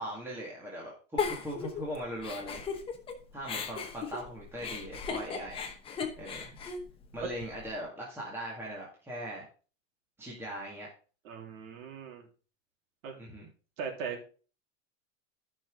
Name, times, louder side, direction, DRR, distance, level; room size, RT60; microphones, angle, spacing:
voice 1, 0.0-2.6 3.3-5.6 6.2-6.6 7.1-9.5 10.2-10.9 13.2-13.5, equal, 5° right, -4 dB, 2.0 m, -40 dB
Giggle, 1.2-3.1 3.4-7.7, left 6 dB, 15° left, 0.9 m, -37 dB
voice 2, 11.2-12.3 13.0-13.2 13.8-14.3, right 6 dB, 85° right, 2 dB, 3.4 m, -39 dB
13.0 x 6.0 x 3.7 m, 0.37 s
supercardioid pair, 165°, 39 cm